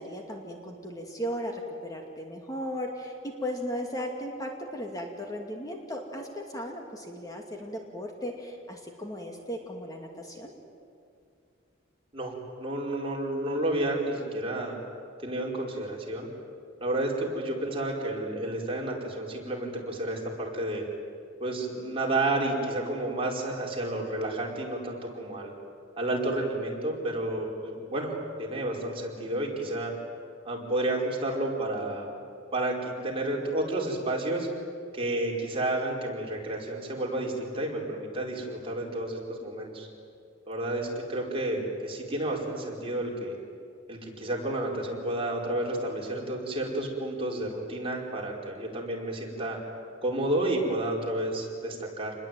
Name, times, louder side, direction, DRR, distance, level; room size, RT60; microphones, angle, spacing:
voice 1, 0.0-10.5, equal, 20° left, 2 dB, 2.4 m, -36 dB
voice 2, 12.1-14.8 15.2-16.3 16.8-20.8 21.4-25.5 26.0-29.9 30.4-32.2 32.5-34.5 34.9-39.9 40.5-43.4 43.9-49.6 50.0-52.1, right 1 dB, 30° right, -1 dB, 4.8 m, -31 dB
28.0 x 21.0 x 9.2 m, 2.5 s
head